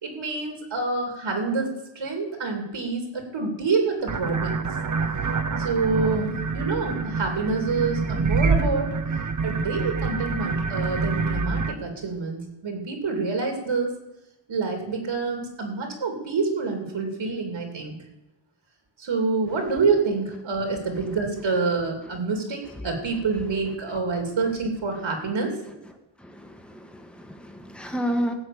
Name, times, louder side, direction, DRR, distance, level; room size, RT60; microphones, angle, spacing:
voice 1, 0.0-4.7 5.6-8.9 9.4-13.9 14.5-17.9 19.0-25.5, right 4 dB, 70° right, 3 dB, 2.8 m, -27 dB
sound 1, 4.1-11.7, right 4 dB, 40° right, 1.0 m, -26 dB
voice 2, 26.6-28.3, equal, ahead, 5 dB, 1.5 m, -30 dB
15.5 x 5.8 x 8.5 m, 0.95 s
wide cardioid pair, 105°, 48 cm